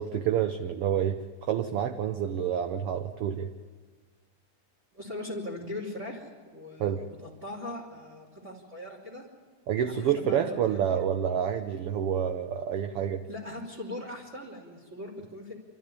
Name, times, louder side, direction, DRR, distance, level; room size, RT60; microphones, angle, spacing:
voice 1, 0.0-3.5 6.8-7.0 9.7-13.2, right 9 dB, 70° right, 8 dB, 1.4 m, -28 dB
voice 2, 4.9-9.2 9.8-10.6 10.9-11.0 13.3-15.5, left 1 dB, 25° right, -1 dB, 3.5 m, -40 dB
27.5 x 13.0 x 9.9 m, 1.5 s
omnidirectional pair, 3.5 m